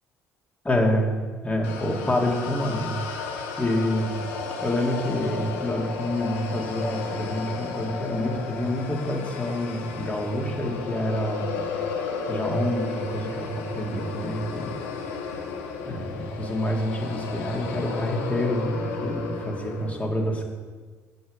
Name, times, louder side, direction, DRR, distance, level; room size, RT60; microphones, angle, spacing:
voice 1, 0.7-1.1 1.4-4.3 4.6-11.7 12.3-14.7 15.9-20.4, left 1 dB, 20° left, 0 dB, 2.1 m, -27 dB
sound 1, 1.6-19.9, left 5 dB, 80° left, 1.1 m, -33 dB
7.7 x 7.7 x 5.3 m, 1.5 s
hypercardioid pair, 55°, 7 cm